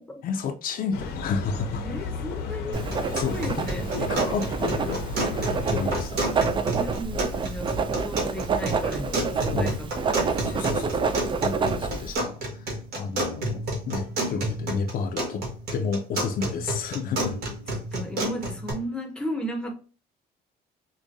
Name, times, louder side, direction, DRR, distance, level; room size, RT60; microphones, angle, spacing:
voice 1, 0.2-1.9 2.9-3.7 3.9-5.0 5.3-6.2 9.5-9.7 10.4-12.7 12.9-15.4 15.7-17.4, left 5 dB, 60° left, 0.5 m, -31 dB
sound 1, 0.9-6.1, left 4 dB, 80° left, 0.8 m, -34 dB
voice 2, 1.8-2.9 3.3-3.9 6.7-10.7 17.5-19.7, equal, 5° left, 0.7 m, -35 dB
Writing, 2.7-12.1, right 5 dB, 30° right, 0.4 m, -28 dB
sound 2, 2.7-18.7, right 1 dB, 70° right, 1.5 m, -31 dB
4.8 x 2.2 x 2.6 m
cardioid pair, 110°, 17 cm